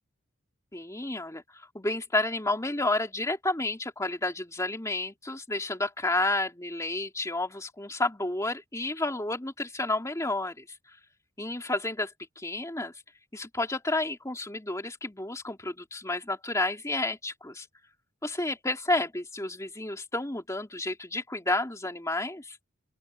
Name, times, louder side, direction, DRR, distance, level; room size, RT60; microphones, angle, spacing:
voice 1, 0.7-10.6 11.4-12.9 13.3-17.7 18.2-22.6, left 2 dB, 15° left, 2.7 m, -31 dB
open air
head